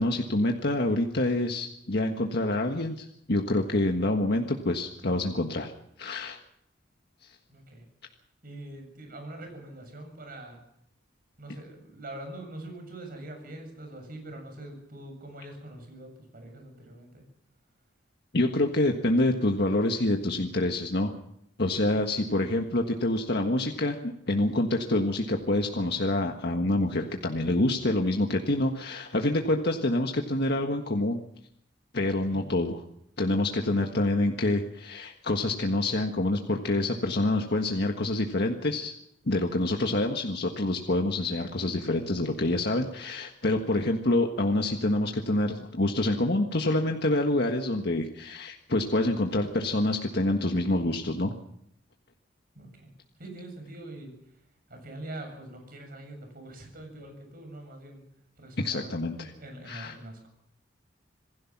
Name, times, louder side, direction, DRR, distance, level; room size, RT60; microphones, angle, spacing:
voice 1, 0.0-5.7 6.0-6.4 18.3-21.1 21.6-31.2 31.9-32.8 33.2-38.9 39.3-51.3 58.6-59.3 59.7-59.9, left 1 dB, 60° left, 3 dB, 1.6 m, -27 dB
voice 2, 7.5-7.8 8.4-10.6 11.4-17.2 21.8-22.0 32.3-32.4 52.5-52.9 53.2-54.1 54.7-58.0 58.4-58.9 59.1-60.3, right 1 dB, 50° right, 4 dB, 7.4 m, -43 dB
27.0 x 16.5 x 6.0 m, 0.75 s
head